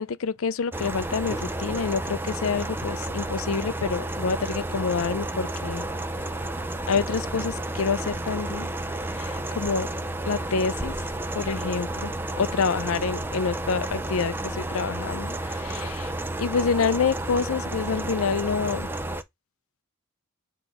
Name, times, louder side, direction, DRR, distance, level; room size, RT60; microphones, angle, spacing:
voice 1, 0.0-5.9 6.9-8.7 9.1-9.9 10.2-10.9 11.3-12.1 12.4-18.9, left 5 dB, 70° left, 0.5 m, -27 dB
sound 1, 0.7-19.2, right 1 dB, 10° right, 0.4 m, -31 dB
7.0 x 3.0 x 4.8 m
head